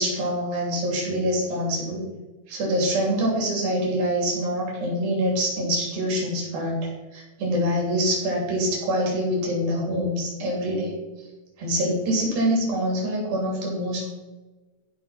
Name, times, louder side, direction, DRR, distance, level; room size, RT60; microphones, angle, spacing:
voice 1, 0.0-2.0 2.5-10.9 11.6-14.1, equal, 85° right, -2 dB, 4.9 m, -25 dB
15.0 x 5.9 x 4.3 m, 1.2 s
omnidirectional pair, 4.1 m